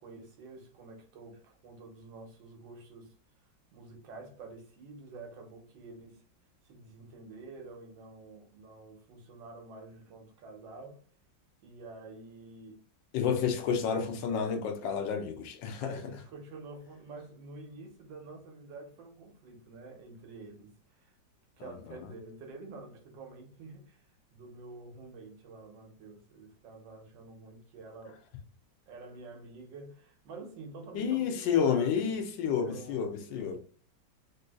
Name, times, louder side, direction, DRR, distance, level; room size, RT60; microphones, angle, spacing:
voice 1, 0.0-3.1 3.4-6.2 6.6-11.0 11.6-12.9 13.6-13.8 15.8-21.2 21.6-28.2 28.9-33.6, right 3 dB, 85° right, 1.5 m, -48 dB
voice 2, 13.1-16.0 21.6-22.0 30.9-33.6, left 7 dB, 85° left, 1.3 m, -30 dB
3.6 x 2.6 x 2.2 m
omnidirectional pair, 2.0 m